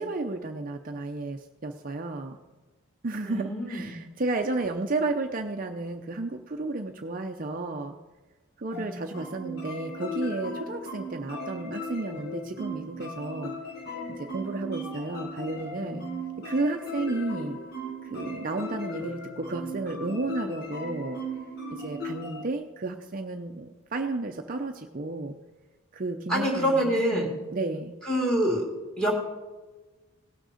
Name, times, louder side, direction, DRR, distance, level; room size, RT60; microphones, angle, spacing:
voice 1, 0.0-2.4 3.0-8.0 8.6-13.5 14.1-16.0 16.4-17.6 18.0-21.2 21.7-25.3 25.9-27.9, right 2 dB, 40° right, 4 dB, 0.5 m, -32 dB
voice 2, 3.2-3.9 26.3-27.3 28.0-28.6 29.0-29.1, right 1 dB, 5° left, -1 dB, 2.3 m, -25 dB
sound 1, 8.7-22.4, equal, 45° left, 1.6 m, -37 dB
17.5 x 6.4 x 5.0 m, 1.2 s
head